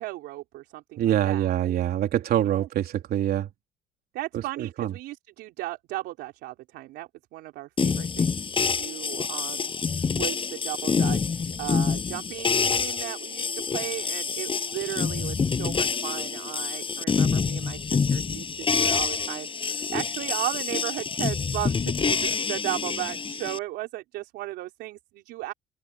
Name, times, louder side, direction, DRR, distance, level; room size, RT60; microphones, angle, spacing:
voice 1, 0.0-1.8 2.4-2.7 4.1-9.7 10.2-25.5, right 17 dB, 90° right, 3.9 m, -36 dB
voice 2, 1.0-3.5 4.3-4.9, right 11 dB, 65° right, 4.1 m, -25 dB
sound 1, 7.8-23.6, left 5 dB, 30° left, 7.9 m, -27 dB
cardioid pair, 110°, 17 cm